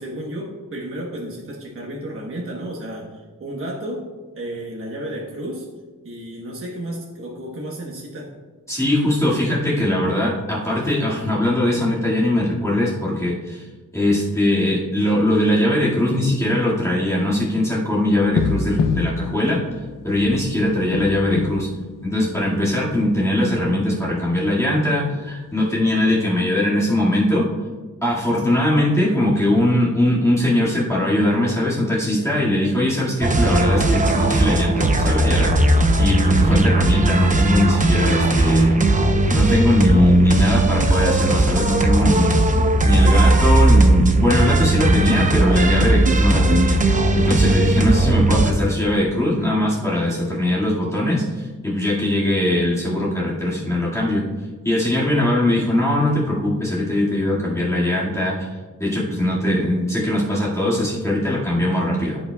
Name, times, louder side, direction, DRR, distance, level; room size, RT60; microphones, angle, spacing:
voice 1, 0.0-4.1 4.4-5.7 6.0-8.3, right 1 dB, 40° right, -2 dB, 1.2 m, -32 dB
voice 2, 8.7-13.7 13.9-21.7 22.0-27.4 28.0-38.8 39.3-42.4 42.8-46.8 47.2-54.2 54.6-58.5 58.8-62.2, left 1 dB, 10° left, -8 dB, 2.0 m, -20 dB
sound 1, 18.2-22.8 23.1-23.2 23.5-24.2 25.7-25.8, left 5 dB, 80° left, 0.6 m, -27 dB
sound 2, 33.2-48.5, right 2 dB, 25° right, 0.7 m, -17 dB
15.5 x 5.4 x 2.3 m, 1.4 s
wide cardioid pair, 135°, 32 cm